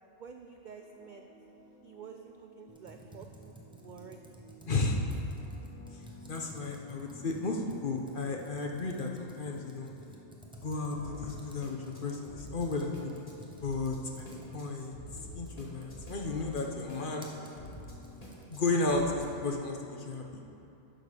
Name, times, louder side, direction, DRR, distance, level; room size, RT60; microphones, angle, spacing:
voice 1, 0.1-1.2 1.8-4.2, right 6 dB, 70° right, 4 dB, 0.4 m, -49 dB
sound 1, 0.6-19.3, equal, 30° left, 1.6 m, -51 dB
Computer keyboard, 2.7-19.1, right 1 dB, 5° right, 0.8 m, -53 dB
voice 2, 4.7-5.0 6.3-9.9 10.6-13.1 13.6-15.0 15.3-17.3 18.5-20.4, left 3 dB, 45° left, 1 dB, 0.9 m, -33 dB
11.5 x 6.4 x 5.0 m, 2.8 s
omnidirectional pair, 1.3 m